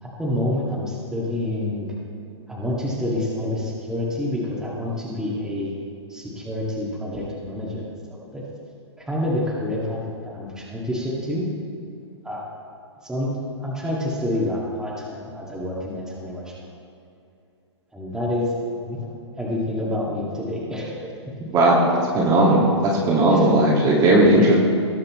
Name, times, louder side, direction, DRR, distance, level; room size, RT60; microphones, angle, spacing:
voice 1, 0.0-1.9 2.5-5.7 6.1-8.5 9.0-11.5 12.2-12.5 13.0-16.5 17.9-18.5 18.8-19.0 19.4-21.1 21.4-21.5 23.3-23.4 24.1-24.5, left 1 dB, 5° right, -5 dB, 2.0 m, -28 dB
voice 2, 21.5-24.5, right 1 dB, 25° right, -3 dB, 1.9 m, -17 dB
19.0 x 6.5 x 3.1 m, 2.6 s
hypercardioid pair, 125°, 15 cm